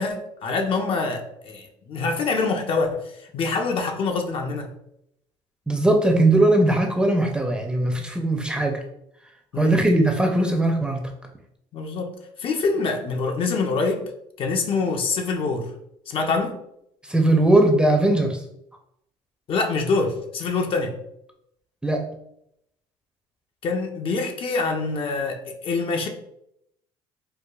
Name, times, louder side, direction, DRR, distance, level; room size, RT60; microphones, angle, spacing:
voice 1, 0.0-4.7 9.5-9.8 11.7-12.1 12.4-14.0 14.4-15.7 16.1-16.6 19.5-21.0 23.6-26.1, left 4 dB, 50° left, 3 dB, 0.6 m, -25 dB
voice 2, 5.7-8.8 9.6-11.0 17.1-18.4 21.8-22.0, right 1 dB, 10° right, 2 dB, 0.6 m, -19 dB
4.6 x 2.3 x 2.3 m, 0.77 s
supercardioid pair, 90°, 12 cm